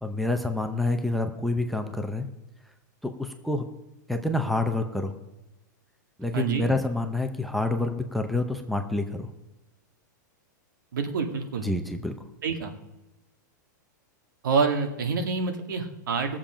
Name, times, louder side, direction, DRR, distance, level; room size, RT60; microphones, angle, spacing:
voice 1, 0.0-2.3 3.0-3.6 4.1-5.1 6.2-9.3 11.6-12.1, left 2 dB, ahead, 6 dB, 0.7 m, -27 dB
voice 2, 6.3-6.7 10.9-11.7 12.4-12.7 14.4-16.4, right 5 dB, 90° right, 5 dB, 2.1 m, -27 dB
19.5 x 7.4 x 5.1 m, 0.99 s
supercardioid pair, 165°, 10 cm